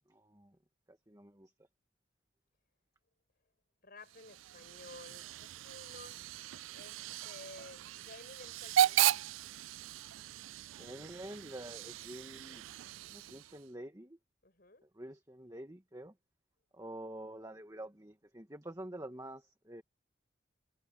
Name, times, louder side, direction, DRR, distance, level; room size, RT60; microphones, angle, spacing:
voice 1, 0.1-0.6 0.9-1.5 10.7-12.6 13.0-14.2 14.9-16.1 16.7-19.8, right 1 dB, 15° right, 1.7 m, -47 dB
voice 2, 3.8-6.2 6.7-9.2 14.4-14.9, left 2 dB, 50° left, 6.4 m, -54 dB
Hiss / Train / Alarm, 4.0-13.7, right 12 dB, 80° right, 0.3 m, -36 dB
head